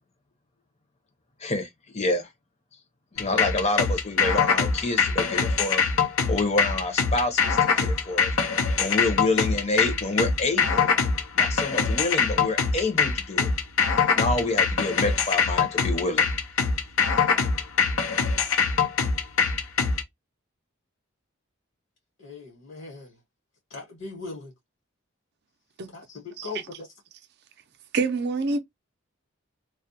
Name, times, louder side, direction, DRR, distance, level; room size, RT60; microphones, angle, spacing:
voice 1, 1.9-2.3 3.1-5.8 6.3-8.3 8.8-10.9 11.3-13.5 14.1-16.2, left 2 dB, 35° left, 0.7 m, -27 dB
sound 1, 3.2-20.0, left 5 dB, 90° left, 0.6 m, -23 dB
voice 2, 22.2-23.2 23.7-24.5 25.9-26.9 28.5-28.6, left 3 dB, 60° left, 1.1 m, -39 dB
voice 3, 27.9-28.6, right 3 dB, 55° right, 0.5 m, -26 dB
2.3 x 2.1 x 2.6 m
head